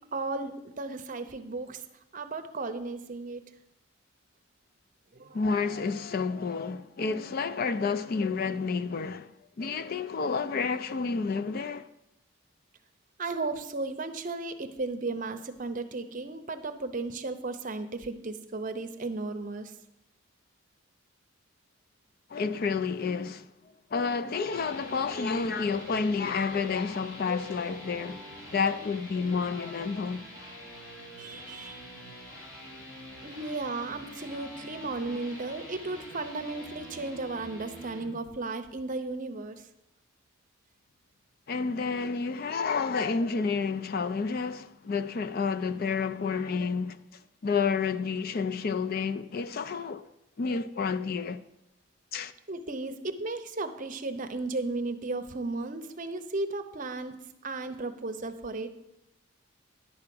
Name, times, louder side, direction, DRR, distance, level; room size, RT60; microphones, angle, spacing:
voice 1, 0.1-1.8 2.1-3.4 5.1-5.4 13.2-19.7 31.2-31.8 33.2-39.6 52.5-57.1 57.4-58.7, right 3 dB, 40° right, 0.6 m, -35 dB
voice 2, 5.3-9.3 9.6-11.9 22.3-23.5 23.9-28.3 28.5-30.2 41.5-47.0 47.4-50.0 50.4-51.4 52.1-52.3, left 5 dB, 45° left, 0.4 m, -30 dB
sound 1, 24.3-38.1, equal, 60° left, 3.1 m, -46 dB
10.5 x 4.8 x 7.6 m
head